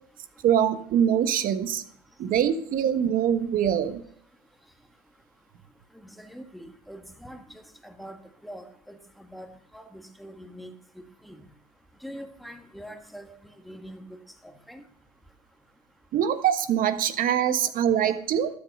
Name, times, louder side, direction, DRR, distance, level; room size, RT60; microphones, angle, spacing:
voice 1, 0.4-1.8 2.2-4.0 16.1-18.5, right 9 dB, 45° right, 11 dB, 1.3 m, -23 dB
voice 2, 6.0-7.4 7.8-8.2 8.4-9.5 9.7-10.7 11.2-11.4 12.0-13.3 13.6-14.0 14.7-14.8, equal, ahead, 6 dB, 1.7 m, -43 dB
13.0 x 8.7 x 5.4 m, 0.65 s
hypercardioid pair, 90°, 20 cm